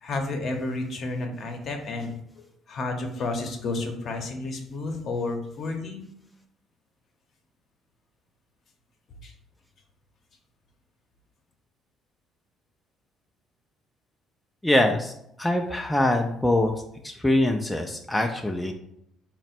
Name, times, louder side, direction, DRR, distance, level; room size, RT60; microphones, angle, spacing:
voice 1, 0.0-6.1 9.2-9.3, left 2 dB, 50° left, 4 dB, 0.7 m, -31 dB
voice 2, 14.6-15.1 15.4-16.7 17.0-18.7, left 1 dB, 5° left, 3 dB, 0.3 m, -23 dB
4.0 x 2.1 x 4.2 m, 0.74 s
cardioid pair, 110°, 0 cm